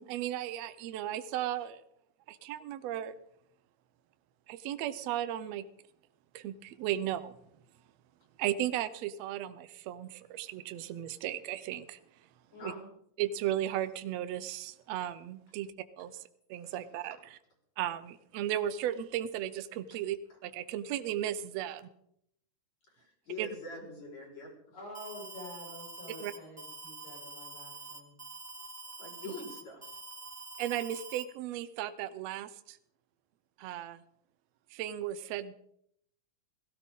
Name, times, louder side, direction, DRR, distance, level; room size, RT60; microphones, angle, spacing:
voice 1, 0.0-1.8 2.3-3.1 4.5-5.6 6.3-7.3 8.4-12.0 12.6-12.7 13.2-15.7 16.0-16.2 16.5-17.2 17.8-20.2 20.4-21.9 23.4-23.5 26.2-26.3 30.6-32.8 33.6-34.0 34.7-35.5, right 12 dB, 70° right, 12 dB, 1.7 m, -35 dB
voice 2, 12.5-12.9 24.7-28.1, left 1 dB, 80° left, -3 dB, 7.8 m, -47 dB
voice 3, 22.9-24.8 29.0-30.0, left 2 dB, 55° left, -2 dB, 6.3 m, -45 dB
Alarm, 24.9-31.2, right 3 dB, 10° right, 0.7 m, -46 dB
18.0 x 16.0 x 3.7 m, 0.72 s
omnidirectional pair, 3.8 m